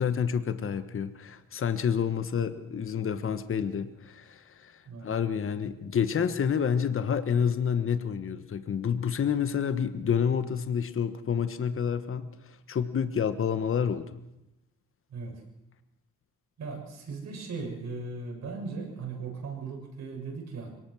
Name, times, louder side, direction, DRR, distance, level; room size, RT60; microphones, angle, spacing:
voice 1, 0.0-4.7 5.0-14.1, left 7 dB, 45° left, 10 dB, 1.5 m, -29 dB
voice 2, 4.9-5.5 13.6-13.7 15.1-15.4 16.6-20.7, right 4 dB, 60° right, 2 dB, 7.4 m, -38 dB
22.5 x 19.5 x 6.4 m, 0.90 s
cardioid pair, 90°, 30 cm